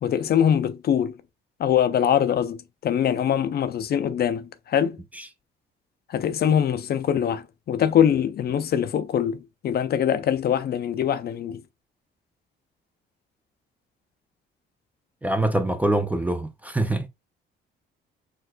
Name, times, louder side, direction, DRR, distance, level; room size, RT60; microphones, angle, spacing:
voice 1, 0.0-1.1 1.6-5.0 6.1-11.6, left 9 dB, 50° left, 0.4 m, -23 dB
voice 2, 15.2-17.1, right 1 dB, 10° right, 0.5 m, -24 dB
4.3 x 2.3 x 2.4 m
cardioid pair, 90°, 20 cm